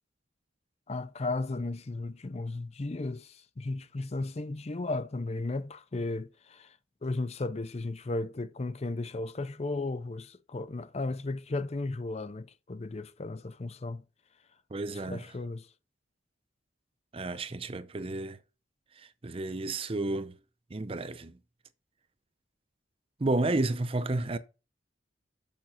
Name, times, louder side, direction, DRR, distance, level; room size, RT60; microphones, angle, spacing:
voice 1, 0.9-6.8 7.0-14.0 15.1-15.7, left 2 dB, 35° left, 0.5 m, -35 dB
voice 2, 14.7-15.3 17.1-18.4 19.0-20.3 20.7-21.4 23.2-24.4, right 2 dB, 30° right, 0.6 m, -31 dB
7.3 x 5.8 x 5.7 m
head